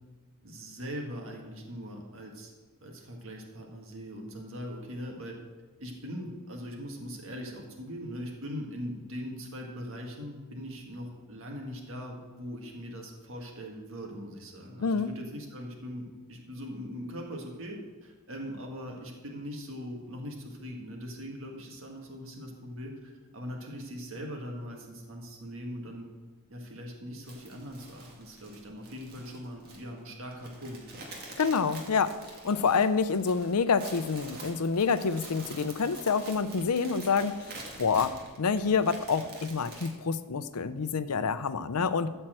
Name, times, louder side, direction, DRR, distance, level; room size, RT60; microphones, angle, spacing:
voice 1, 0.4-2.5 2.8-5.4 5.8-26.1 26.5-30.8, equal, 60° right, 1 dB, 1.8 m, -41 dB
sound 1, 27.3-39.9, right 2 dB, 45° right, 1.7 m, -47 dB
voice 2, 31.4-42.1, left 5 dB, 90° left, 13 dB, 0.6 m, -27 dB
13.5 x 4.5 x 7.6 m, 1.3 s
head